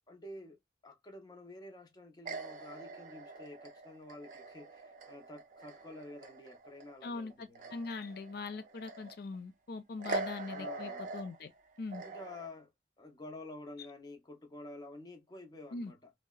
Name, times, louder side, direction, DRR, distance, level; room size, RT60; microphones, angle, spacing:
voice 1, 0.1-7.8 10.5-11.1 12.0-12.7 13.0-16.1, left 2 dB, 25° left, 0.6 m, -50 dB
sound 1, 2.2-7.0 7.3-9.3 10.0-12.5, right 3 dB, 45° right, 0.4 m, -43 dB
voice 2, 7.0-11.5 11.8-12.0 15.7-15.9, left 3 dB, 60° left, 0.4 m, -41 dB
2.7 x 2.0 x 2.3 m
head